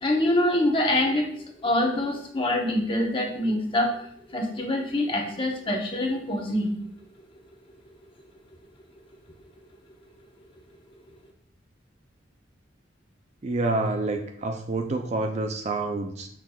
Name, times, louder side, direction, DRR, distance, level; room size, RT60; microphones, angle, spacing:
voice 1, 0.0-1.3 1.6-4.0 4.3-6.7, left 1 dB, 25° left, 1 dB, 1.0 m, -25 dB
voice 2, 13.4-16.3, right 2 dB, 35° right, 4 dB, 0.4 m, -28 dB
7.1 x 5.9 x 2.3 m, 0.66 s
head